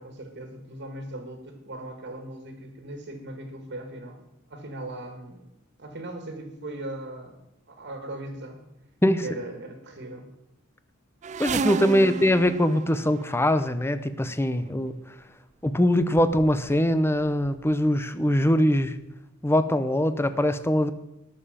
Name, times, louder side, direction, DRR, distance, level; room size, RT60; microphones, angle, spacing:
voice 1, 0.0-4.2 4.5-5.4 5.8-7.4 7.7-8.6 9.2-10.3 12.0-12.1, right 1 dB, 55° right, 5 dB, 1.9 m, -38 dB
sound 1, 11.2-13.7 14.7-14.9 15.7-15.8 16.0-16.9 17.2-17.7 18.4-18.5 18.8-18.9, right 5 dB, 35° right, 0.4 m, -33 dB
voice 2, 11.4-15.0 15.6-19.0 19.4-20.9, left 1 dB, 10° left, 12 dB, 0.7 m, -22 dB
20.0 x 6.8 x 5.1 m, 0.89 s
head